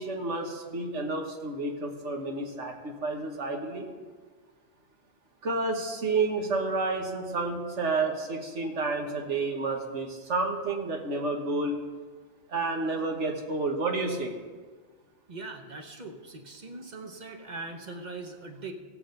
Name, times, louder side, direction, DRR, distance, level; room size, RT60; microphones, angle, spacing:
voice 1, 0.0-3.9 5.4-11.8 12.5-14.3, right 3 dB, 80° right, 2 dB, 1.7 m, -30 dB
voice 2, 15.3-18.7, right 3 dB, 40° right, 4 dB, 1.1 m, -41 dB
17.5 x 7.8 x 3.9 m, 1.5 s
omnidirectional pair, 1.2 m